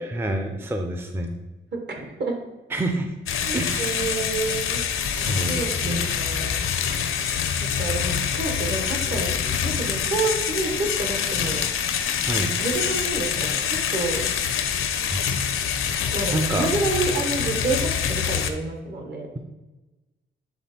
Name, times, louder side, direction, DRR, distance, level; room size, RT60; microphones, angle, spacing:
voice 1, 0.0-1.3 2.7-3.1 3.5-4.0 5.1-6.1 12.2-12.5 14.7-15.2 16.3-16.7, right 1 dB, 10° right, 5 dB, 0.4 m, -28 dB
voice 2, 1.7-2.4 3.5-4.8 5.5-6.5 7.8-9.3 9.6-11.7 12.6-14.3 16.1-19.3, right 3 dB, 55° right, 2 dB, 1.3 m, -29 dB
sound 1, 3.3-18.5, left 7 dB, 85° left, 0.6 m, -25 dB
7.9 x 3.6 x 4.2 m, 1.1 s
wide cardioid pair, 140°, 21 cm